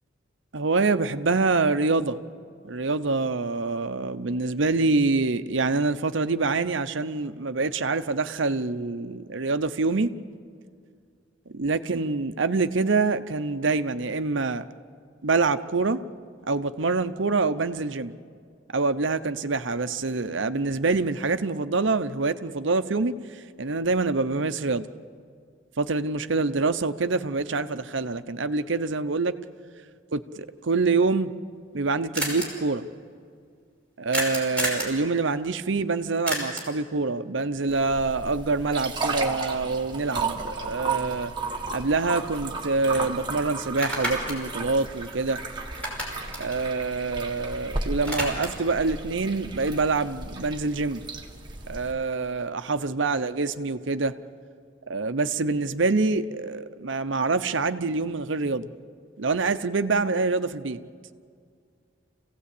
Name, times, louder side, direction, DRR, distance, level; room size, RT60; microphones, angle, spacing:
voice 1, 0.5-2.2 2.6-10.1 11.5-14.6 15.2-16.0 16.5-18.1 18.7-24.9 25.8-29.4 30.1-31.3 31.7-32.8 34.0-41.3 41.7-45.4 46.4-51.0 51.7-54.1 54.9-58.7 59.2-60.8, right 3 dB, 65° right, 11 dB, 0.8 m, -26 dB
sound 1, 31.5-31.6 31.8-31.9 32.1-32.5 34.1-35.0 36.3-36.8 41.0-41.1 41.5-42.6 42.9-43.1 43.6-45.4 45.7-47.5 47.8-48.7, right 1 dB, 5° left, 5.5 m, -31 dB
sound 2, 37.7-51.9, right 3 dB, 25° right, 1.6 m, -34 dB
27.5 x 17.0 x 8.5 m, 2.2 s
head